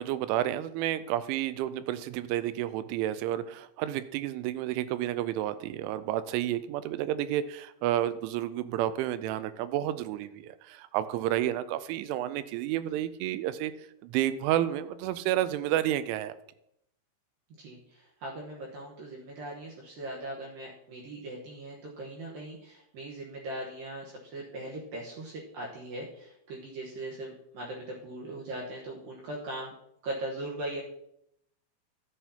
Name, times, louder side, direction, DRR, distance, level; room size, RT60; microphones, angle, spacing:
voice 1, 0.0-13.7 14.0-16.4, right 12 dB, 90° right, 13 dB, 3.0 m, -30 dB
voice 2, 17.6-29.7 30.0-30.8, right 1 dB, 70° right, -3 dB, 2.3 m, -40 dB
13.5 x 7.8 x 2.8 m, 0.78 s
omnidirectional pair, 5.4 m